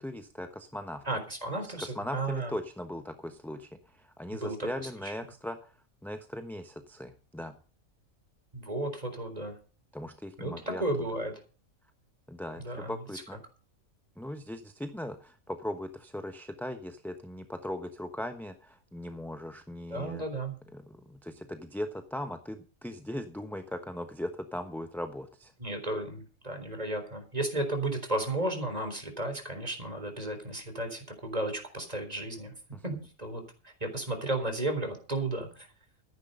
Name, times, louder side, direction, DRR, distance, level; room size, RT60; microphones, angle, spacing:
voice 1, 0.0-1.0 1.6-3.7 4.0-5.7 6.0-7.5 9.9-10.8 12.3-13.4 14.2-20.2 20.7-25.5 32.7-32.8, left 1 dB, ahead, 7 dB, 1.0 m, -39 dB
voice 2, 1.0-2.5 4.3-5.1 8.5-9.6 10.4-11.3 12.6-12.9 19.9-20.6 25.6-32.5 32.8-35.7, right 2 dB, 30° right, 6 dB, 4.1 m, -34 dB
14.5 x 10.5 x 5.4 m, 0.36 s
omnidirectional pair, 1.4 m